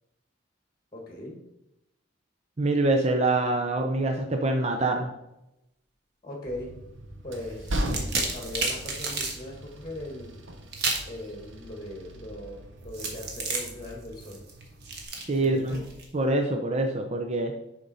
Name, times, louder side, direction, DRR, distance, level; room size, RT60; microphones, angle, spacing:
voice 1, 0.9-1.4 6.2-6.7 7.2-7.8 8.3-10.3 11.0-14.4 15.3-15.9, left 1 dB, 20° left, 1 dB, 1.4 m, -39 dB
voice 2, 2.6-5.1 15.3-15.8 16.1-17.5, right 2 dB, 35° right, 3 dB, 0.6 m, -25 dB
Train, 6.5-15.1, equal, 80° right, 1.0 m, -38 dB
sound 1, 7.7-9.4 10.7-11.1 12.9-16.1, right 3 dB, 55° right, 1.3 m, -31 dB
7.0 x 5.1 x 4.1 m, 0.88 s
head